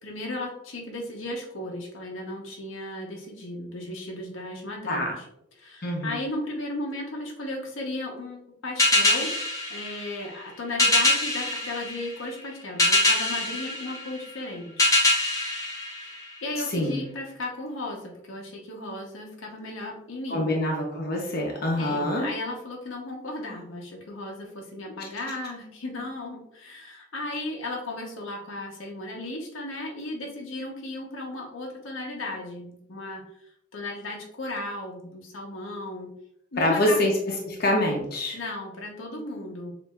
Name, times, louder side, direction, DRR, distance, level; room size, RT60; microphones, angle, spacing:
voice 1, 0.0-5.2 5.6-14.9 16.0-16.2 16.4-20.5 21.8-33.2 33.7-36.1 36.5-37.0 38.3-39.7, left 1 dB, 80° left, 0 dB, 0.9 m, -35 dB
voice 2, 4.9-5.2 5.8-6.1 16.6-17.0 20.3-22.3 25.0-25.1 36.6-38.4, left 1 dB, 50° left, -1 dB, 0.8 m, -25 dB
sound 1, 8.8-16.7, left 2 dB, 15° left, 0.8 m, -25 dB
6.7 x 2.7 x 2.4 m, 0.74 s
head